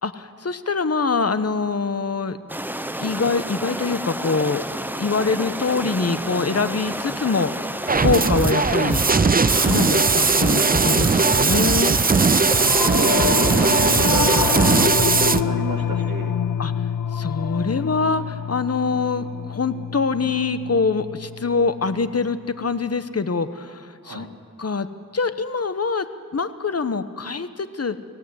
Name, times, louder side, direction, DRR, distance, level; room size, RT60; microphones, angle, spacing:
voice 1, 0.0-2.4 2.9-4.6 5.0-7.7 8.0-9.0 9.5-11.9 12.9-13.3 16.6-16.7 17.1-24.3 24.6-24.9 25.1-26.1 26.3-28.0, left 4 dB, 45° left, 11 dB, 1.1 m, -24 dB
sound 1, 2.5-14.9, right 1 dB, 5° right, 1.0 m, -30 dB
sound 2, 7.9-15.4, right 4 dB, 25° right, 0.5 m, -18 dB
voice 2, 12.3-16.3 24.0-24.3, right 3 dB, 85° right, 3 dB, 2.0 m, -30 dB
Singing / Musical instrument, 12.6-22.1, left 8 dB, 75° left, 0.6 m, -27 dB
25.0 x 17.0 x 8.0 m, 2.2 s
cardioid pair, 40°, 33 cm